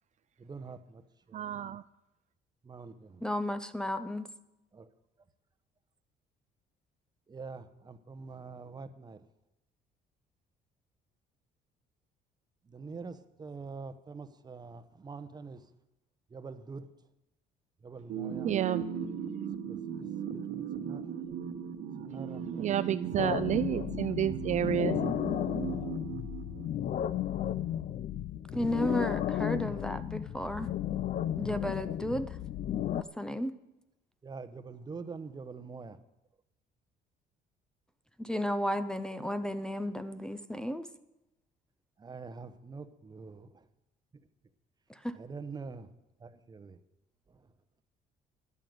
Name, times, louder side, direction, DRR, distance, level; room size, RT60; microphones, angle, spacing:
voice 1, 0.4-1.7 2.6-3.2 4.7-4.9 7.3-9.3 12.6-15.7 16.3-16.9 17.8-18.5 19.7-21.3 22.0-22.8 34.2-36.0 42.0-43.7 45.1-45.9 46.2-46.8 47.3-47.5, right 4 dB, 25° right, 11 dB, 0.9 m, -45 dB
voice 2, 1.3-1.8 18.4-18.8 22.6-25.0, right 11 dB, 45° right, 13 dB, 0.4 m, -30 dB
voice 3, 3.2-4.3 28.5-30.7 31.4-32.4 32.9-33.6 38.2-40.9 44.9-45.2, equal, 5° left, 12 dB, 0.6 m, -33 dB
sound 1, 18.1-27.1, right 7 dB, 75° right, 1.2 m, -38 dB
sound 2, 23.2-33.0, left 11 dB, 50° left, 0.5 m, -34 dB
11.0 x 9.0 x 7.8 m, 0.92 s
cardioid pair, 110°, 17 cm